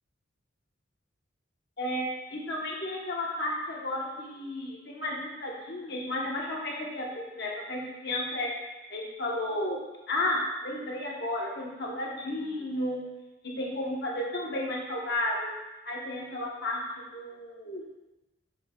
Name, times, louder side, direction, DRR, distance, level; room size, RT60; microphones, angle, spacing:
voice 1, 1.8-8.5 8.9-9.8 10.1-13.0 13.4-15.5 15.8-16.8 17.1-17.8, left 1 dB, 55° left, -2 dB, 1.1 m, -33 dB
6.9 x 6.0 x 2.3 m, 1.1 s
head